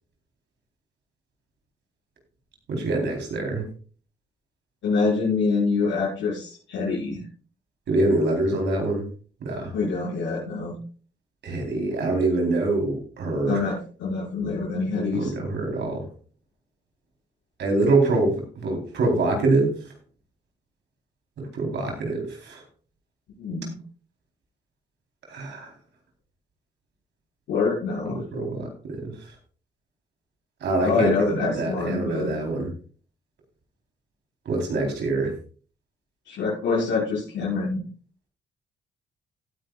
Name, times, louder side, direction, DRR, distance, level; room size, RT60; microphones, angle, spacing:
voice 1, 2.7-3.7 7.9-9.0 9.4-9.7 11.4-13.6 15.1-16.1 17.6-19.7 21.4-22.6 25.3-25.7 28.1-29.1 30.6-32.7 34.5-35.3, right 2 dB, 70° right, 2 dB, 3.9 m, -25 dB
voice 2, 4.8-7.2 9.7-10.8 13.5-15.3 23.4-23.7 27.5-28.5 30.8-32.3 36.3-37.8, left 4 dB, 85° left, -8 dB, 5.9 m, -26 dB
17.5 x 9.6 x 2.4 m, 0.41 s
cardioid pair, 75°, 19 cm